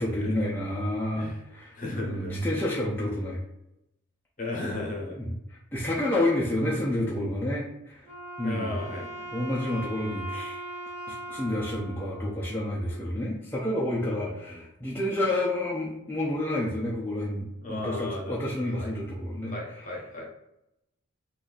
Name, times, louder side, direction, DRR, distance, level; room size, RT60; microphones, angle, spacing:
voice 1, 0.0-3.4 5.1-5.3 5.7-8.0 8.4-8.8 9.3-10.6 11.1-19.6, left 1 dB, 10° left, -6 dB, 0.5 m, -29 dB
voice 2, 1.7-2.4 4.4-5.2 8.4-9.4 10.7-10.8 11.4-11.6 13.9-14.6 17.6-18.5 18.8-18.9 19.4-20.3, left 2 dB, 40° left, -1 dB, 0.8 m, -36 dB
Wind instrument woodwind instrument, 8.0-13.2, right 2 dB, 35° right, 1.1 m, -40 dB
2.6 x 2.3 x 3.9 m, 0.87 s
head